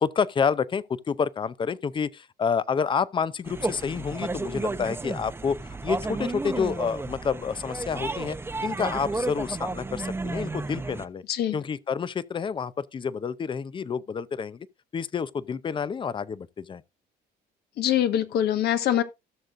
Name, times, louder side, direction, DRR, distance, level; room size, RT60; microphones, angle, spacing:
voice 1, 0.0-8.4 8.6-11.2 11.5-14.7 14.9-16.8, left 6 dB, 30° left, 0.6 m, -29 dB
sound 1, 3.5-11.1, right 3 dB, 15° right, 0.8 m, -32 dB
voice 2, 17.8-19.0, left 11 dB, 70° left, 1.5 m, -23 dB
16.5 x 6.5 x 2.6 m
cardioid pair, 110°, 17 cm